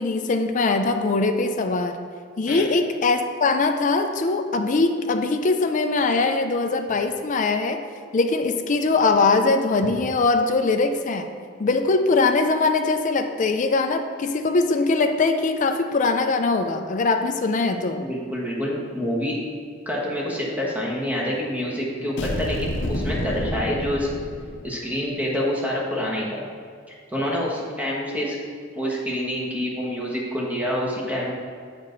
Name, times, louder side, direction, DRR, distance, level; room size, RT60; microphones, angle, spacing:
voice 1, 0.0-2.0 2.4-7.8 8.1-11.3 11.6-18.1, left 3 dB, 40° left, 6 dB, 0.4 m, -22 dB
voice 2, 18.0-19.4 19.8-24.1 24.6-26.4 26.9-28.4 28.7-31.3, equal, 10° right, -4 dB, 1.4 m, -27 dB
sound 1, 22.2-24.9, left 1 dB, 65° left, 0.8 m, -29 dB
7.3 x 5.2 x 3.9 m, 2.1 s
head